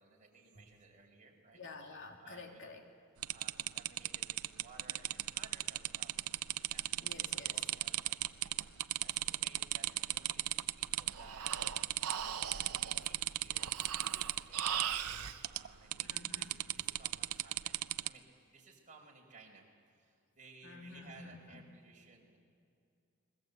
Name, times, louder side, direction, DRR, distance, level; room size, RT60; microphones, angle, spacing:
voice 1, 0.0-1.6 2.2-2.7 3.3-8.7 9.0-22.4, right 3 dB, 35° right, 0 dB, 5.1 m, -59 dB
voice 2, 1.5-2.8 7.0-7.6 16.1-16.6 20.6-21.6, left 3 dB, 55° left, 3 dB, 2.5 m, -50 dB
sound 1, 3.2-11.1 11.4-12.2 12.4-14.9 15.4-15.7 15.9-18.1, right 15 dB, 70° right, 0.6 m, -36 dB
Breathing, 10.8-15.4, right 8 dB, 85° right, 1.0 m, -40 dB
29.5 x 21.5 x 8.2 m, 2.4 s
head